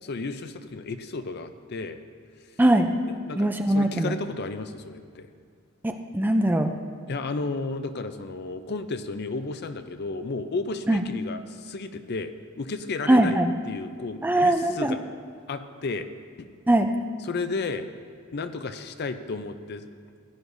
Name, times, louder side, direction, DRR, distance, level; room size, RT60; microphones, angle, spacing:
voice 1, 0.0-2.0 3.0-5.3 7.1-13.4 13.6-15.0 15.5-16.1 16.4-16.5 17.2-17.9 18.3-19.9, left 3 dB, 50° left, 10 dB, 0.5 m, -33 dB
voice 2, 2.6-2.9 3.4-4.1 5.8-6.7 10.9-11.0 13.1-13.5 14.2-15.0 16.7-16.9, right 1 dB, 10° right, 6 dB, 0.4 m, -21 dB
15.5 x 9.8 x 2.6 m, 2.2 s
head